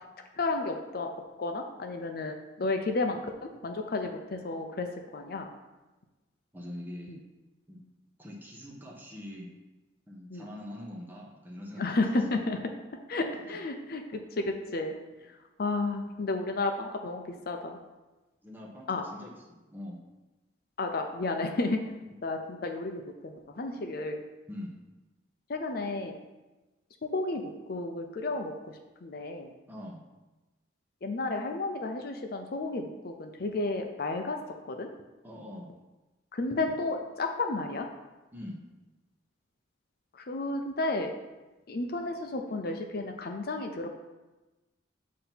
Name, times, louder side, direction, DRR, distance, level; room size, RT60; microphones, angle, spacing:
voice 1, 0.4-1.1 1.4-5.5 7.1-7.2 10.3-10.5 11.8-12.6 13.1-14.9 15.6-17.8 18.9-19.0 20.8-21.8 22.2-24.2 25.5-26.2 27.0-27.4 27.7-29.5 31.0-34.4 34.6-34.9 36.3-37.9 40.2-41.1 41.7-43.9, left 2 dB, 50° left, 4 dB, 0.5 m, -32 dB
voice 2, 6.5-7.2 7.7-7.8 8.2-9.5 10.1-12.0 13.5-13.6 18.4-20.0 24.5-24.7 29.7-30.0 35.2-35.7 38.3-38.6, left 1 dB, 10° right, -2 dB, 0.9 m, -43 dB
7.2 x 2.8 x 5.7 m, 1.1 s
head